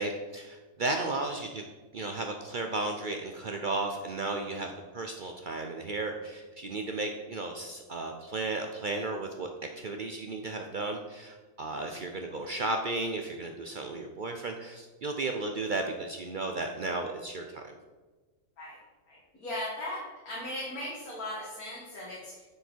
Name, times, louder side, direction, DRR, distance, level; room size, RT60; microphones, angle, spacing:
voice 1, 0.0-1.6 1.9-9.5 9.8-17.6, right 2 dB, 60° right, 3 dB, 0.5 m, -34 dB
voice 2, 11.7-12.1 18.6-18.8 19.1-22.4, left 1 dB, 85° left, -6 dB, 2.2 m, -38 dB
9.6 x 4.7 x 4.5 m, 1.3 s
omnidirectional pair, 1.5 m